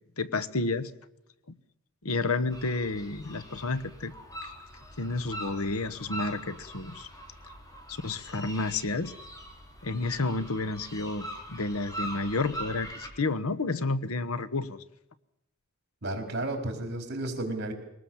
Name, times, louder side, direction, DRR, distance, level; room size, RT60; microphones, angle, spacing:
voice 1, 0.2-0.9 2.0-4.1 5.0-7.1 7.9-9.1 9.8-14.8, left 3 dB, 90° left, 13 dB, 1.2 m, -30 dB
sound 1, 2.5-13.1, right 1 dB, 15° left, 3.7 m, -42 dB
voice 2, 16.0-17.7, right 2 dB, 50° right, 4 dB, 4.4 m, -32 dB
23.0 x 19.0 x 7.2 m, 0.84 s
head